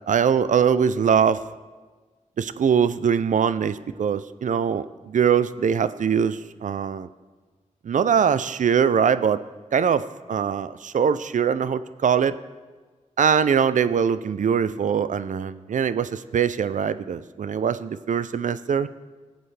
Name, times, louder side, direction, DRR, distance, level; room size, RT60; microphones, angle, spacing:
voice 1, 0.1-1.4 2.4-7.1 7.8-9.4 9.7-12.3 13.2-18.9, right 7 dB, 70° right, 14 dB, 0.5 m, -22 dB
19.0 x 7.8 x 3.3 m, 1.4 s
cardioid pair, 65°, 13 cm